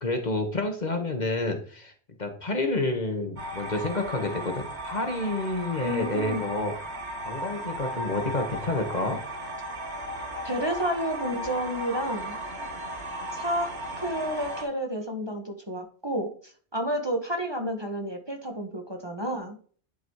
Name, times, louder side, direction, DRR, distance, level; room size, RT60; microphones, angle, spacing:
voice 1, 0.0-1.9 2.2-6.7 7.2-9.2, left 2 dB, 40° left, 4 dB, 1.2 m, -29 dB
sound 1, 3.4-14.6, equal, 80° right, 2.3 m, -36 dB
voice 2, 5.8-6.4 10.4-12.4 13.3-13.7 14.0-19.6, equal, 25° right, 3 dB, 1.2 m, -30 dB
10.5 x 4.0 x 4.6 m, 0.43 s
omnidirectional pair, 1.1 m